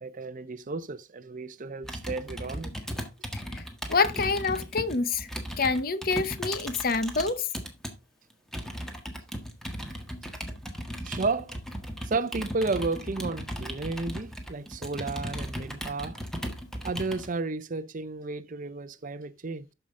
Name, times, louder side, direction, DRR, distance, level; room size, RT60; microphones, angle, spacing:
voice 1, 0.0-2.7 11.0-11.5 12.0-16.2 16.8-19.6, right 3 dB, 45° right, 0.6 m, -32 dB
Computer keyboard, 1.8-7.9 8.5-17.3, equal, ahead, 1.6 m, -37 dB
voice 2, 3.3-3.6 3.9-5.3 5.6-7.5, left 4 dB, 50° left, 0.9 m, -27 dB
12.5 x 5.6 x 3.7 m
head